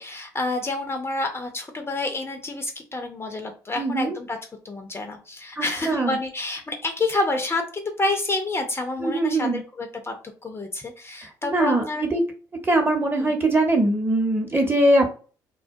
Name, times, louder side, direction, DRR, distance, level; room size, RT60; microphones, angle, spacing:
voice 1, 0.0-4.4 4.6-10.1 10.4-12.0 13.1-13.3, left 2 dB, 25° left, 4 dB, 0.5 m, -28 dB
voice 2, 3.8-4.1 5.6-6.2 9.0-9.6 11.4-12.2 12.7-15.1, right 1 dB, 20° right, 3 dB, 0.8 m, -21 dB
2.2 x 2.2 x 2.6 m, 0.37 s
hypercardioid pair, 50°, 10 cm